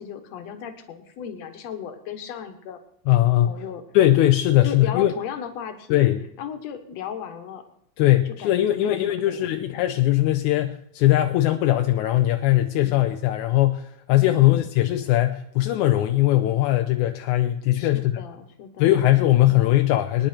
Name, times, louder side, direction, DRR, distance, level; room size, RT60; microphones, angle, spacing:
voice 1, 0.0-2.8 3.5-3.8 4.6-6.0 6.4-7.6 8.3-9.8 12.8-13.1 17.7-19.0 19.4-19.6, left 8 dB, 65° left, 7 dB, 2.5 m, -36 dB
voice 2, 3.1-3.5 3.9-5.1 5.9-6.2 8.0-18.1 18.8-20.3, left 14 dB, 85° left, 7 dB, 2.1 m, -20 dB
24.5 x 10.0 x 4.4 m, 0.76 s
omnidirectional pair, 3.4 m